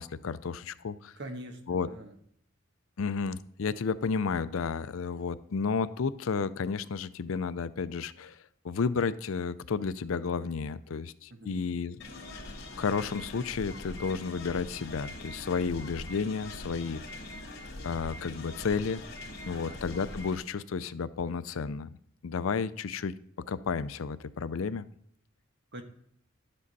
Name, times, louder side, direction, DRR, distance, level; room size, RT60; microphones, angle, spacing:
voice 1, 0.0-1.1 1.7-1.9 3.0-8.4 8.6-12.0 12.8-17.2 17.8-19.0 19.5-21.9 22.2-23.1 23.5-24.9, left 5 dB, 85° left, 15 dB, 0.5 m, -32 dB
voice 2, 1.2-2.1 11.3-11.6 19.5-19.8 25.7-25.8, right 1 dB, 60° right, 6 dB, 1.3 m, -43 dB
sound 1, 12.0-20.4, left 2 dB, 55° left, 1.9 m, -43 dB
11.5 x 7.6 x 4.1 m, 0.68 s
head